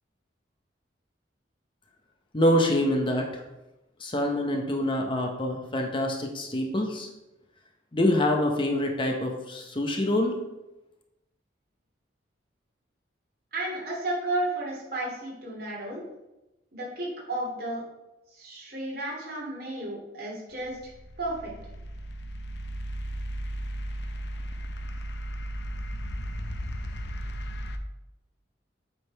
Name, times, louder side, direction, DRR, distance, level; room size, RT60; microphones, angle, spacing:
voice 1, 2.3-3.4 4.0-7.1 7.9-10.4, left 1 dB, 25° left, 2 dB, 0.9 m, -25 dB
voice 2, 13.5-16.0 16.7-17.8 18.3-20.8 21.2-21.6, right 1 dB, 55° right, -4 dB, 2.8 m, -33 dB
sound 1, 20.5-27.8, equal, 60° left, 0.7 m, -35 dB
8.2 x 3.9 x 4.6 m, 0.97 s
head